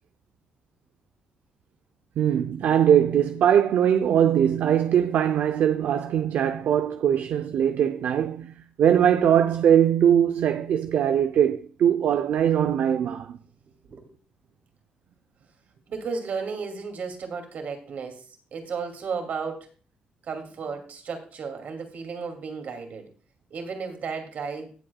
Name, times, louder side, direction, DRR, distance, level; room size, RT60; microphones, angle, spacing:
voice 1, 2.2-13.4, right 9 dB, 75° right, 0.6 m, -21 dB
voice 2, 15.9-18.2 18.5-19.7 20.2-23.1 23.5-24.7, right 5 dB, 60° right, 2.5 m, -34 dB
17.5 x 7.7 x 2.3 m
cardioid pair, 140°, 3 cm